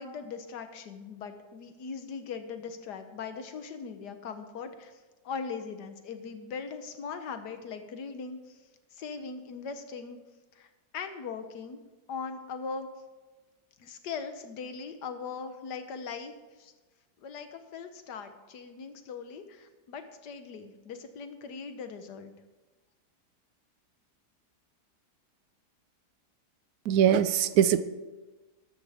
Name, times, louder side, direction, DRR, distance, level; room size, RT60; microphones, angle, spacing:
voice 1, 0.0-8.6 8.9-10.2 10.5-11.8 12.1-12.9 13.8-16.3 16.6-16.7 17.2-22.3, left 5 dB, 75° left, 8 dB, 1.6 m, -40 dB
voice 2, 26.9-27.8, right 9 dB, 70° right, 13 dB, 1.0 m, -22 dB
13.0 x 12.5 x 3.6 m, 1.2 s
omnidirectional pair, 1.8 m